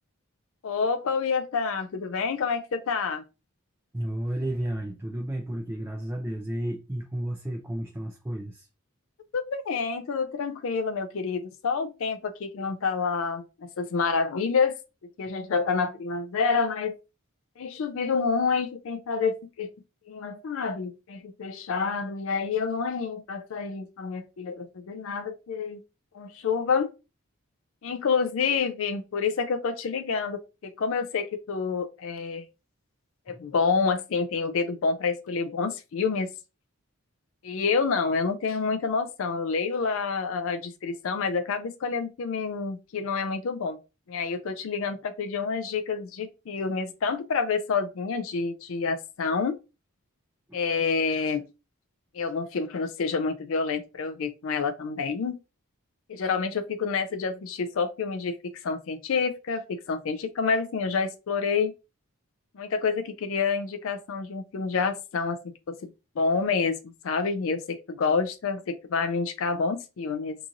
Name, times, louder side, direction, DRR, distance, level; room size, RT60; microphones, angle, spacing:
voice 1, 0.6-3.2 9.3-13.4 13.8-14.7 15.2-16.9 17.6-19.7 20.1-25.8 26.1-26.9 27.8-32.4 33.3-36.3 37.4-43.8 44.1-49.6 50.5-51.4 52.1-55.4 56.1-58.4 58.6-61.7 62.5-65.4 65.7-65.9 66.2-66.8 67.0-70.4, left 5 dB, 65° left, 0.4 m, -28 dB
voice 2, 3.9-8.7 33.3-33.4 50.5-50.6, right 1 dB, 10° right, 0.4 m, -32 dB
2.9 x 2.4 x 3.8 m
head